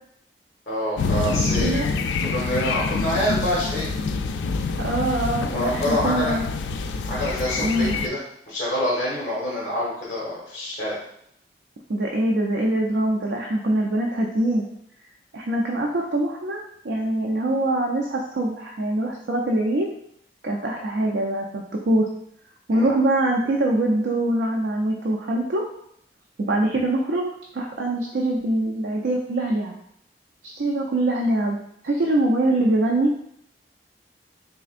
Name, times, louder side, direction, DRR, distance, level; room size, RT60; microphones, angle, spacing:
voice 1, 0.7-1.8 2.2-3.9 5.5-6.4 7.1-8.2 8.5-11.0 22.7-22.9, equal, 40° left, -7 dB, 1.0 m, -26 dB
sound 1, 1.0-8.1, left 4 dB, 90° left, 0.3 m, -26 dB
voice 2, 1.5-1.9 4.8-6.4 7.6-8.0 11.9-14.7 15.3-19.9 20.4-22.1 22.7-25.7 26.5-27.2 27.5-29.7 30.5-31.6 31.8-33.1, right 1 dB, 75° right, 0 dB, 0.4 m, -23 dB
3.8 x 3.3 x 2.4 m, 0.72 s
head